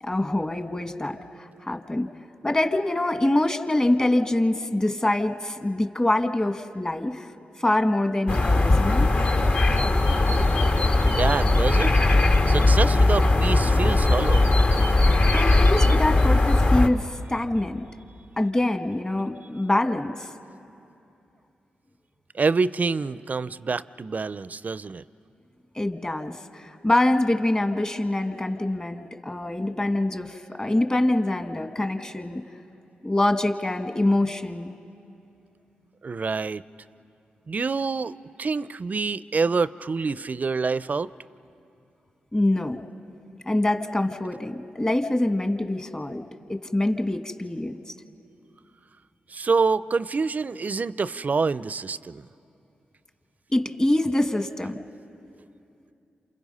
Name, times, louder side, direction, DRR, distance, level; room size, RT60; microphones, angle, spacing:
voice 1, 0.0-2.1 2.4-7.3 7.6-9.2 15.3-17.8 18.4-20.3 25.7-32.4 33.0-34.7 42.3-42.8 43.4-47.8 53.5-54.8, left 1 dB, 25° left, 7 dB, 1.6 m, -25 dB
sound 1, 8.3-16.9, left 2 dB, 50° left, 1.5 m, -19 dB
voice 2, 11.0-11.9 12.5-14.5 22.3-25.0 36.0-36.6 37.5-41.1 49.3-52.3, right 4 dB, 50° right, 17 dB, 0.5 m, -26 dB
28.5 x 28.0 x 5.5 m, 2.6 s
supercardioid pair, 50°, 4 cm